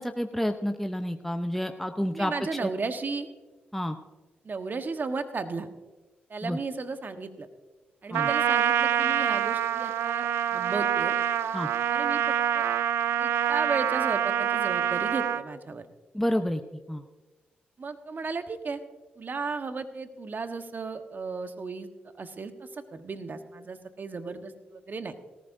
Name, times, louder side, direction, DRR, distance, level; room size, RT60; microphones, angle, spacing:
voice 1, 0.0-2.3 2.6-2.7 3.7-4.0 6.4-6.6 8.1-8.3 11.5-11.7 16.1-16.6 16.9-17.0, equal, 5° left, 6 dB, 0.8 m, -29 dB
voice 2, 2.1-3.3 4.4-5.7 6.3-7.5 8.0-11.1 11.9-12.7 13.2-15.8 17.8-18.8 19.2-21.9 22.2-25.1, right 4 dB, 45° right, 8 dB, 1.2 m, -35 dB
Trumpet, 8.1-15.4, right 10 dB, 75° right, 0.4 m, -26 dB
18.0 x 14.5 x 2.7 m, 1.2 s
supercardioid pair, 45°, 4 cm